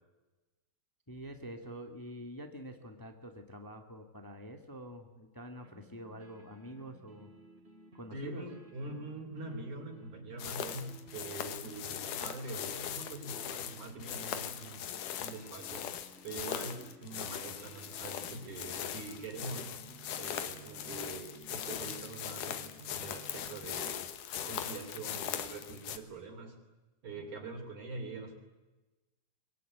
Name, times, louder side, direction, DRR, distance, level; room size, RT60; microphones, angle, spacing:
voice 1, 1.1-7.3 7.9-8.5, equal, 15° left, 5 dB, 0.7 m, -46 dB
sound 1, 5.6-23.9, right 2 dB, 20° right, 2.7 m, -55 dB
voice 2, 8.1-14.9 15.2-15.9 16.2-19.7 20.2-24.1 24.5-26.6 27.0-28.4, right 3 dB, 55° right, 2 dB, 4.3 m, -44 dB
sound 2, 10.4-26.0, left 10 dB, 65° left, 2.6 m, -40 dB
24.0 x 22.0 x 9.5 m, 1.2 s
omnidirectional pair, 4.4 m